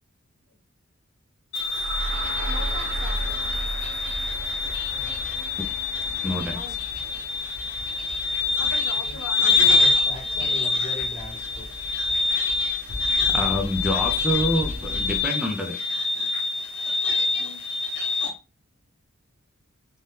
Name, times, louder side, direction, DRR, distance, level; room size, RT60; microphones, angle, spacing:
sound 1, 1.5-18.3, left 4 dB, 65° left, 0.9 m, -26 dB
sound 2, 1.5-9.5, right 2 dB, 60° right, 0.4 m, -35 dB
sound 3, 2.1-15.2, equal, 80° right, 1.0 m, -40 dB
voice 1, 2.5-3.6 6.4-6.8 8.6-10.6 14.8-14.9 17.4-17.6, left 3 dB, 85° left, 4 dB, 0.6 m, -41 dB
voice 2, 4.9-5.3 8.9-9.2 9.6-11.9, left 1 dB, 30° left, -2 dB, 1.1 m, -41 dB
voice 3, 6.2-6.6 13.3-15.8, equal, 5° right, 0 dB, 0.5 m, -26 dB
2.7 x 2.2 x 3.3 m, 0.30 s
head